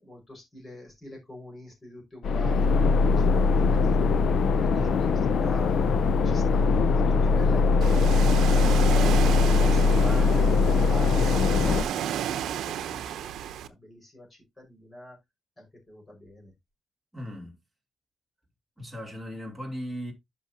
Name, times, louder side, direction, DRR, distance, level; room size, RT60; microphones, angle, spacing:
voice 1, 0.0-4.1 4.6-5.1 5.4-5.8 6.2-13.3 13.6-15.2 15.6-16.5, equal, 15° left, 5.4 m, -44 dB
sound 1, 2.2-11.8, left 4 dB, 55° left, 0.6 m, -21 dB
voice 2, 4.8-5.2 17.1-17.6 18.8-20.1, equal, ahead, 3.0 m, -37 dB
Ocean, 7.8-13.7, right 10 dB, 80° right, 0.8 m, -33 dB
11.0 x 6.2 x 2.8 m
cardioid pair, 165°, 0 cm